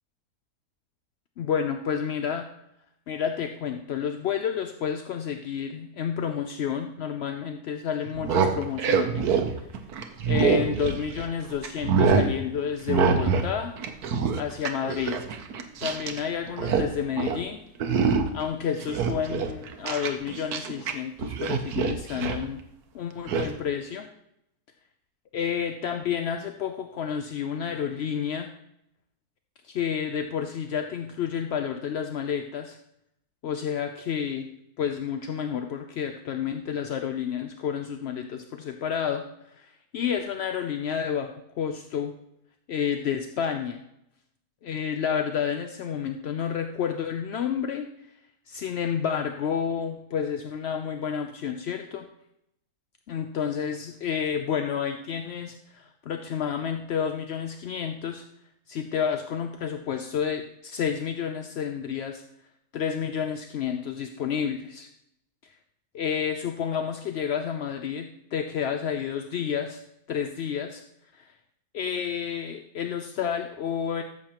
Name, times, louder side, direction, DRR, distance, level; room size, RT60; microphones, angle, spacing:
voice 1, 1.4-2.5 3.1-9.4 10.3-13.7 14.4-15.2 15.8-17.6 18.3-22.6 22.9-24.1 25.3-28.5 29.6-32.8 33.4-34.5 34.8-41.3 41.6-42.2 42.7-43.8 44.6-47.9 48.5-52.1 53.1-58.2 58.7-62.2 62.7-64.9 65.9-69.8 70.1-70.8 71.1-71.3 71.7-74.0, left 8 dB, 65° left, 6 dB, 0.6 m, -30 dB
sound 1, 8.1-11.3 11.6-12.3 12.9-13.5 13.8-16.2 16.5-16.9 17.2-17.4 17.8-18.4 18.8-20.9 21.2-22.4 23.3-23.5, right 6 dB, 80° right, 1.3 m, -25 dB
13.5 x 7.4 x 2.9 m, 0.79 s
omnidirectional pair, 1.6 m